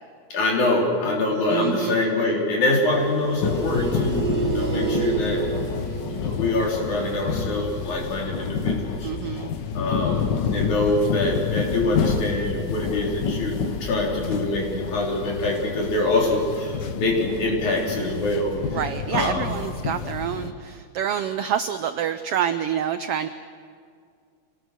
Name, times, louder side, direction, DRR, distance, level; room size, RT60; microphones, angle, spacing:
voice 1, 0.3-5.5 5.8-9.1 9.7-19.5, left 2 dB, 80° left, -2 dB, 5.0 m, -25 dB
voice 2, 1.5-2.0 9.0-9.5 18.7-23.3, right 9 dB, 85° right, 10 dB, 1.3 m, -27 dB
sound 1, 2.7-8.7 10.3-10.7, right 6 dB, 55° right, 0.6 m, -31 dB
sound 2, 3.4-20.5, left 6 dB, 60° left, 1.1 m, -29 dB
26.5 x 18.5 x 6.5 m, 2.2 s
omnidirectional pair, 3.4 m